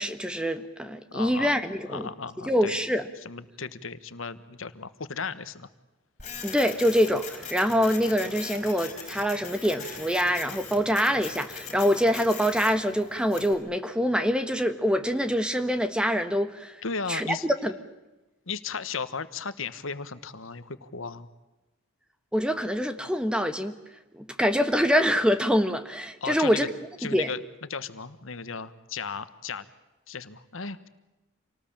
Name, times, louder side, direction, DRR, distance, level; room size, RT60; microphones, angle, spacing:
voice 1, 0.0-2.1 2.5-3.1 6.4-16.8 17.1-17.7 22.3-23.7 24.1-26.7 27.1-27.3, equal, 5° right, 9 dB, 1.3 m, -25 dB
voice 2, 1.1-1.6 1.9-2.7 3.2-5.7 16.8-17.4 18.5-21.3 26.2-26.7 27.0-27.4 27.7-29.6 30.1-30.9, left 5 dB, 80° left, 13 dB, 1.3 m, -35 dB
Printer, 6.2-13.5, left 6 dB, 35° left, 5.1 m, -40 dB
27.5 x 19.0 x 8.8 m, 1.1 s
head